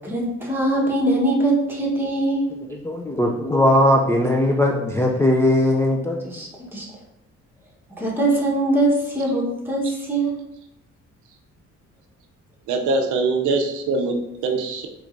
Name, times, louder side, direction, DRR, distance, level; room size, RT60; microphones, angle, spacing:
voice 1, 0.0-2.5 6.2-6.8 8.0-10.3, right 2 dB, 5° right, -3 dB, 1.1 m, -22 dB
voice 2, 2.8-6.2, left 1 dB, 10° left, -1 dB, 0.3 m, -19 dB
voice 3, 12.7-14.9, right 3 dB, 80° right, 3 dB, 0.6 m, -23 dB
4.6 x 3.1 x 2.6 m, 0.84 s
cardioid pair, 90°, 30 cm